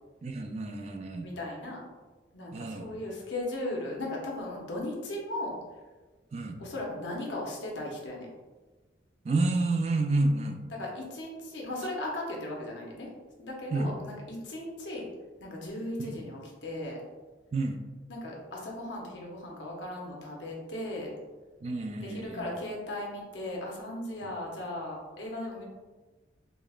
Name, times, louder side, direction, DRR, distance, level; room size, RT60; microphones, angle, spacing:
voice 1, 0.2-1.3 2.5-2.8 6.3-6.6 9.2-10.6 13.7-13.9 16.0-16.2 17.5-17.8 21.6-22.5, right 2 dB, 35° right, 5 dB, 0.3 m, -29 dB
voice 2, 1.2-1.9 2.3-5.6 6.6-8.3 10.7-13.1 13.4-15.1 15.4-17.0 18.1-21.1 22.0-25.6, left 1 dB, 80° left, -2 dB, 0.8 m, -37 dB
4.9 x 2.0 x 2.4 m, 1.2 s
head